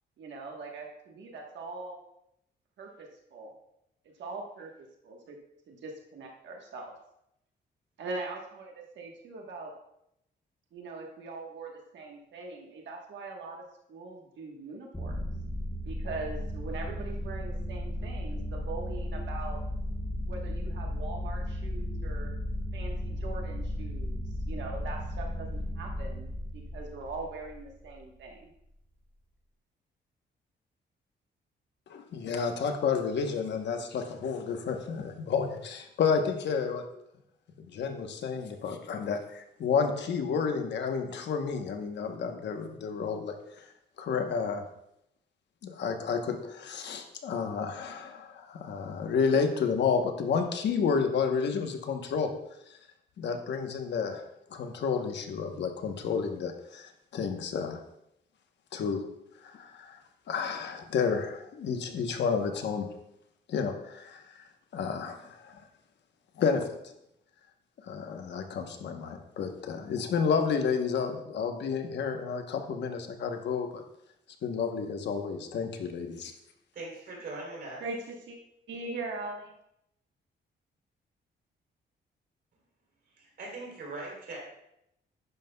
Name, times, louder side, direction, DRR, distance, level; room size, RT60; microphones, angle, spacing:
voice 1, 0.2-2.0 2.8-3.5 4.2-4.7 5.0-5.4 5.7-6.9 8.0-9.7 10.7-15.2 15.8-19.6 20.3-22.4 22.7-28.5 77.8-78.4 78.7-79.5, right 3 dB, 70° right, 0 dB, 1.3 m, -41 dB
sound 1, 14.9-27.8, left 1 dB, 10° left, 0.9 m, -35 dB
voice 2, 31.9-36.8 37.7-43.7 44.0-44.6 45.6-52.3 52.7-52.8 53.2-54.2 54.5-57.8 58.7-59.0 59.4-60.0 60.3-62.9 63.5-64.4 64.7-65.6 66.4-66.7 67.8-73.8 74.4-76.3, left 6 dB, 65° left, 5 dB, 1.0 m, -31 dB
voice 3, 76.7-77.8 83.1-84.4, right 2 dB, 55° right, -2 dB, 3.3 m, -40 dB
11.0 x 9.3 x 2.3 m, 0.80 s
wide cardioid pair, 165°, 19 cm